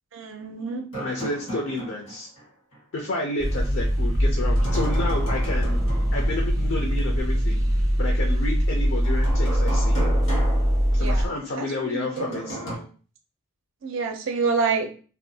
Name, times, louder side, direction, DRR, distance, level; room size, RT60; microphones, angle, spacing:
voice 1, 0.1-0.9 11.0-12.5 13.8-14.9, right 4 dB, 70° right, 4 dB, 0.4 m, -28 dB
sound 1, 0.9-2.4 2.7-2.8 4.5-6.5 9.0-11.5 12.2-12.7, right 2 dB, 85° left, 1.3 m, -34 dB
voice 2, 1.0-2.3 2.9-5.8 6.1-7.6 8.0-10.0 10.9-12.9, left 2 dB, 60° left, 0 dB, 0.4 m, -30 dB
sound 2, 3.4-11.3, equal, 15° right, 0.5 m, -22 dB
2.5 x 2.2 x 2.7 m, 0.39 s
head